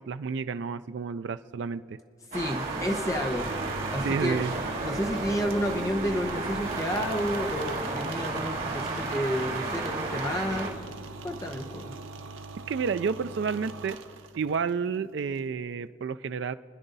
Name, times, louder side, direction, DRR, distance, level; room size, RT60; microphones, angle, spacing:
voice 1, 0.0-2.0 4.0-4.5 12.7-14.0 14.3-16.5, right 5 dB, 65° right, 11 dB, 0.3 m, -30 dB
voice 2, 2.3-3.5 3.9-10.7 11.2-11.9, equal, 15° left, 3 dB, 1.2 m, -31 dB
sound 1, 2.3-10.7, right 3 dB, 45° right, 3.2 m, -33 dB
sound 2, 3.4-14.7, right 3 dB, 90° right, 1.0 m, -42 dB
29.0 x 10.0 x 4.0 m, 2.3 s
head